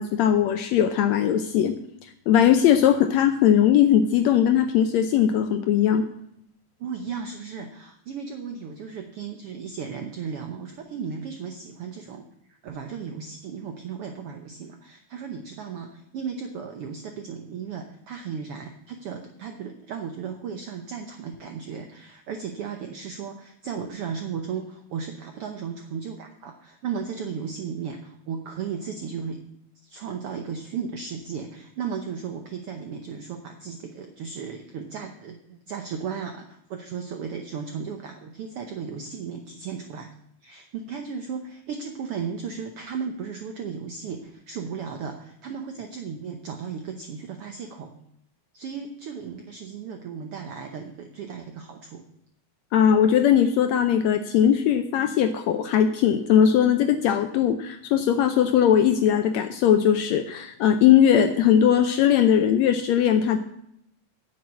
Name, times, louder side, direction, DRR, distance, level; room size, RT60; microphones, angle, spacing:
voice 1, 0.0-1.7 2.3-6.1 52.7-63.4, left 9 dB, 80° left, 8 dB, 1.6 m, -19 dB
voice 2, 6.8-12.2 12.5-29.4 29.8-40.1 40.4-47.9 48.5-52.0, right 6 dB, 75° right, 5 dB, 1.3 m, -35 dB
9.5 x 7.4 x 8.3 m, 0.76 s
omnidirectional pair, 3.7 m